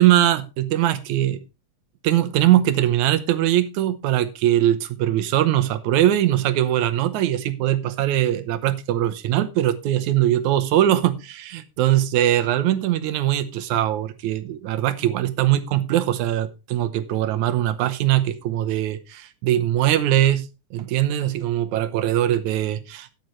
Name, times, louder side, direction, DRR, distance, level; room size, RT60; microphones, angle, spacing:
voice 1, 0.0-1.4 2.0-20.5 20.7-23.2, right 12 dB, 80° right, 2.3 m, -21 dB
13.0 x 9.4 x 3.1 m
omnidirectional pair, 3.3 m